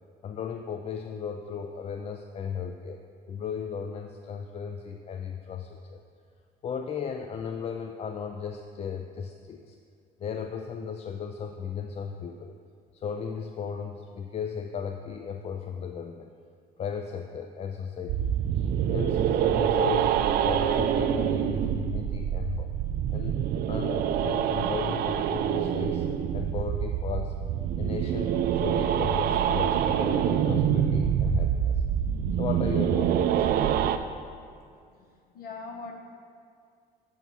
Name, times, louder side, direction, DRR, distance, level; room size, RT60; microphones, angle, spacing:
voice 1, 0.2-3.0 3.3-6.0 6.6-9.8 10.2-12.6 12.9-16.3 16.8-22.7 23.1-23.4 23.7-26.1 26.3-27.4 27.8-31.8 32.4-33.5, left 7 dB, 35° left, 5 dB, 0.4 m, -35 dB
sound 1, 18.1-34.0, right 9 dB, 65° right, 0.4 m, -26 dB
voice 2, 34.6-35.9, left 4 dB, 60° left, 2 dB, 1.0 m, -42 dB
7.0 x 4.6 x 5.4 m, 2.2 s
cardioid pair, 110°, 17 cm